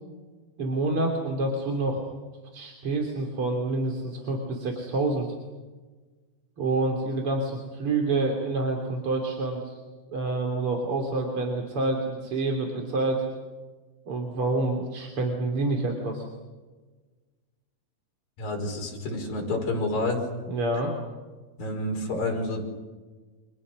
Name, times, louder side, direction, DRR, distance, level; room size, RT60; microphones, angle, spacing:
voice 1, 0.6-2.0 2.5-5.3 6.6-9.8 10.1-13.2 14.1-16.3 20.5-20.9, right 2 dB, 35° right, 2 dB, 3.6 m, -27 dB
voice 2, 18.4-20.2 21.6-22.6, left 2 dB, 65° left, 0 dB, 7.1 m, -29 dB
29.5 x 26.5 x 6.4 m, 1.3 s
omnidirectional pair, 4.5 m